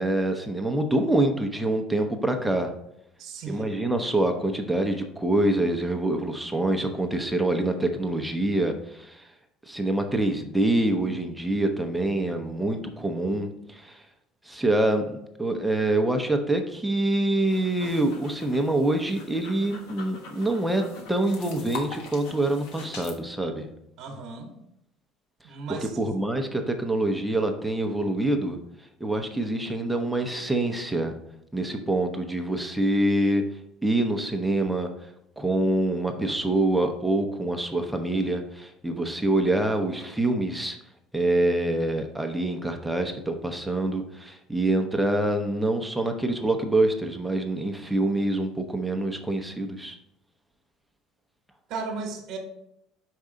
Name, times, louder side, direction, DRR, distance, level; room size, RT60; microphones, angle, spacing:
voice 1, 0.0-2.7 3.5-9.3 9.7-14.0 14.5-23.7 25.7-28.6 29.0-31.1 31.5-33.4 33.8-35.1 35.4-40.8 41.1-50.0, right 1 dB, 5° right, 5 dB, 0.7 m, -25 dB
voice 2, 3.2-3.8 24.0-24.6 25.4-26.0 51.7-52.4, right 4 dB, 65° right, 3 dB, 1.2 m, -35 dB
sound 1, 17.4-23.2, left 4 dB, 80° left, 1.2 m, -42 dB
5.3 x 4.7 x 3.8 m, 0.77 s
supercardioid pair, 95°, 0 cm